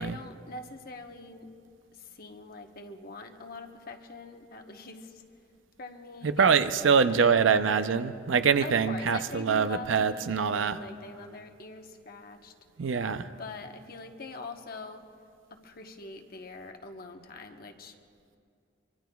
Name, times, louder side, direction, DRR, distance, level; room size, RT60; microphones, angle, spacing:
voice 1, 0.0-1.5 1.9-5.2 5.8-6.5 7.1-7.9 8.6-12.5 13.4-15.0 15.5-18.0, left 3 dB, 50° left, 5 dB, 1.1 m, -43 dB
voice 2, 6.2-10.7 12.8-13.2, right 6 dB, 80° right, 11 dB, 0.6 m, -24 dB
24.5 x 24.5 x 2.3 m, 2.4 s
head